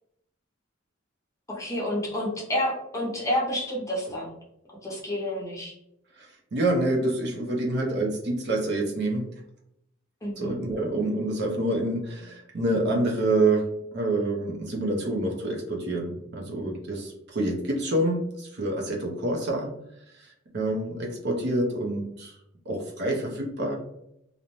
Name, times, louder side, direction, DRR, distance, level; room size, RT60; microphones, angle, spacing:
voice 1, 1.5-4.3 4.8-5.7 10.2-10.6, left 1 dB, 15° left, -4 dB, 0.6 m, -29 dB
voice 2, 6.2-9.3 10.4-19.7 20.5-22.3 22.7-23.8, right 2 dB, 55° right, 0 dB, 0.6 m, -27 dB
2.5 x 2.1 x 2.9 m, 0.78 s
head